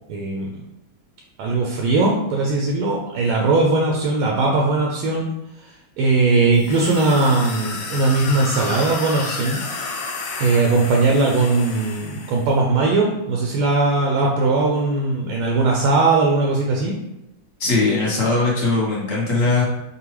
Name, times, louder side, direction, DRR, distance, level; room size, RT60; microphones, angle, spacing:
voice 1, 0.1-0.6 1.4-5.3 5.6-9.6 10.4-17.0, right 3 dB, 85° right, -1 dB, 1.5 m, -19 dB
sound 1, 6.5-12.5, left 3 dB, 70° left, 1.3 m, -31 dB
voice 2, 17.6-19.6, left 3 dB, 50° left, -4 dB, 1.1 m, -20 dB
5.5 x 2.3 x 3.1 m, 0.91 s
omnidirectional pair, 2.3 m